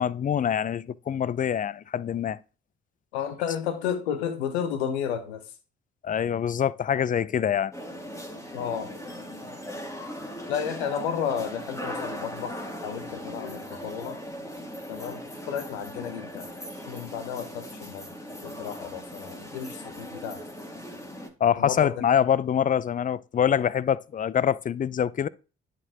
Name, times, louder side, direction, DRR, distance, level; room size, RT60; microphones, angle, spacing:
voice 1, 0.0-2.4 6.0-7.7 21.4-25.3, left 8 dB, 25° left, 0.4 m, -25 dB
voice 2, 3.1-5.4 8.5-8.9 10.5-14.2 14.9-16.5 16.9-18.1 18.4-20.4 21.6-21.9, left 8 dB, 85° left, 1.0 m, -32 dB
sound 1, 7.7-21.3, equal, 10° left, 1.8 m, -39 dB
10.5 x 4.5 x 2.9 m
hypercardioid pair, 45°, 32 cm